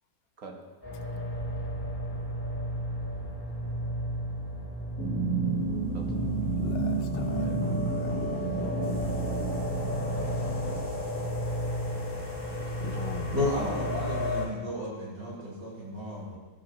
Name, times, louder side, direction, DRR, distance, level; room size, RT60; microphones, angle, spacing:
sound 1, 0.8-14.4, equal, 10° left, 3.6 m, -33 dB
sound 2, 5.0-10.8, right 3 dB, 50° left, 2.1 m, -32 dB
voice 1, 5.9-6.6 7.2-7.8 9.2-9.4 10.0-10.8 12.5-13.4, right 3 dB, 50° right, 2 dB, 1.5 m, -48 dB
voice 2, 6.6-6.9 7.2-7.3 7.9-9.6 12.8-13.7, left 7 dB, 85° left, 8 dB, 0.5 m, -40 dB
voice 3, 13.3-16.4, left 1 dB, 75° right, -7 dB, 4.0 m, -33 dB
13.5 x 12.0 x 3.0 m, 1.2 s
omnidirectional pair, 1.9 m